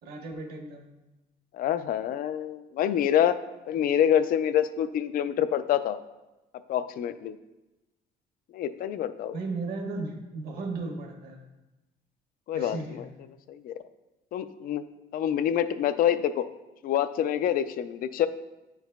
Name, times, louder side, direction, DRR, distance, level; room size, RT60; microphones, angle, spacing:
voice 1, 0.0-0.9 9.3-11.4 12.5-13.0, right 3 dB, 65° right, 2 dB, 1.2 m, -35 dB
voice 2, 1.5-3.4 3.7-6.0 6.7-7.4 8.5-9.4 12.5-13.1 13.5-13.7 14.3-14.8 15.1-16.5 16.8-18.3, left 10 dB, 55° left, 12 dB, 0.4 m, -26 dB
9.5 x 4.6 x 2.3 m, 1.0 s
cardioid pair, 110°, 17 cm